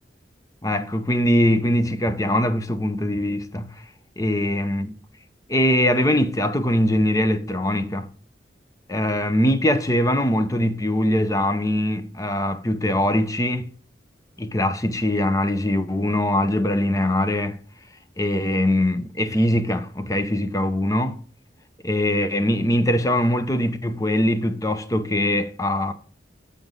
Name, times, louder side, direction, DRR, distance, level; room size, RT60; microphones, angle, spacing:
voice 1, 0.6-3.8 4.2-5.0 5.5-8.1 8.9-13.7 14.4-17.6 18.2-21.2 21.8-25.9, left 1 dB, 20° left, 0.6 m, -22 dB
7.9 x 5.1 x 5.2 m
head